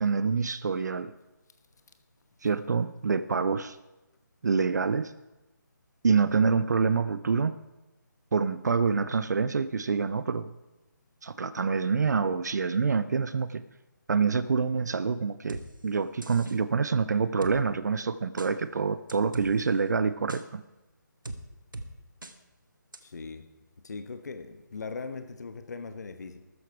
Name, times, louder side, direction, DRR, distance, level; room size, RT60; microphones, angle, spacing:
voice 1, 0.0-1.1 2.4-3.8 4.4-5.1 6.0-7.6 8.3-10.5 11.2-13.6 14.1-20.6, right 5 dB, 60° right, 14 dB, 0.5 m, -26 dB
sound 1, 15.5-15.6 16.2-16.6 17.4-17.6 18.4-18.5 19.1-19.5 20.3-20.4 21.2-21.4 21.7-21.9 22.2-22.3 22.9-23.0, right 2 dB, 80° right, 1.3 m, -39 dB
voice 2, 23.0-23.4 23.8-26.4, left 4 dB, 60° left, 8 dB, 1.0 m, -39 dB
13.5 x 9.8 x 4.7 m, 1.0 s
figure-of-eight pair, 150°, 11 cm